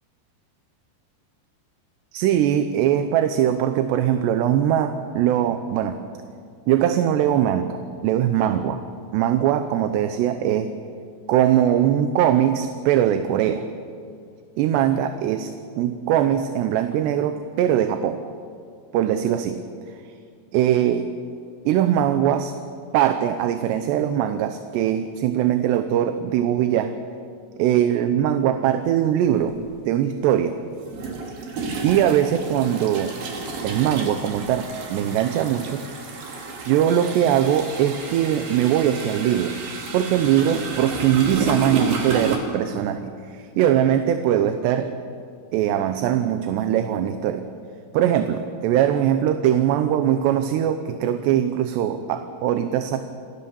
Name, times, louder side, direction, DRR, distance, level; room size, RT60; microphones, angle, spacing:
voice 1, 2.1-6.0 6.7-8.8 9.1-10.7 11.3-13.7 14.6-15.5 15.8-18.2 18.9-20.0 20.5-21.1 21.7-22.5 22.9-26.9 27.6-30.6 31.8-33.2 33.6-35.8 36.7-39.6 39.9-44.9 45.5-47.5 47.9-53.0, right 10 dB, 80° right, 9 dB, 2.9 m, -21 dB
sound 1, 29.4-29.5 30.8-42.4, right 4 dB, 60° right, 4.1 m, -31 dB
27.5 x 17.0 x 7.1 m, 2.3 s
omnidirectional pair, 5.0 m